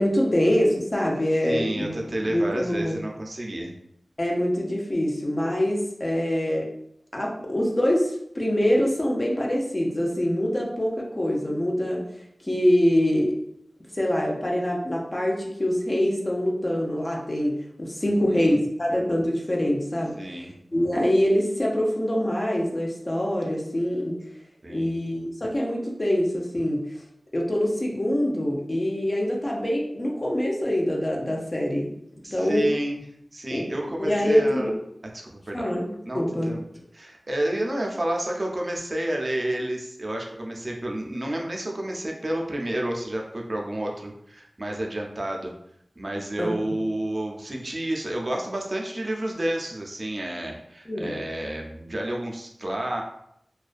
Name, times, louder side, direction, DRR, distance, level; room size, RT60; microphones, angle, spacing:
voice 1, 0.0-1.9 2.2-3.0 4.2-6.7 7.1-12.0 12.5-13.3 13.9-17.5 17.8-20.2 20.7-24.1 24.7-26.8 27.3-31.9 32.3-32.7 33.5-33.6 34.0-34.7 35.5-36.5 46.4-46.8 50.9-51.2, equal, 40° left, -2 dB, 0.6 m, -24 dB
voice 2, 1.4-3.7 18.1-18.6 20.2-20.5 24.6-25.0 32.2-33.0 33.3-34.7 35.1-35.7 36.0-36.6 36.9-45.5 46.0-53.0, right 1 dB, 50° right, 0 dB, 0.4 m, -30 dB
2.4 x 2.2 x 2.4 m, 0.74 s
wide cardioid pair, 45°, 0 cm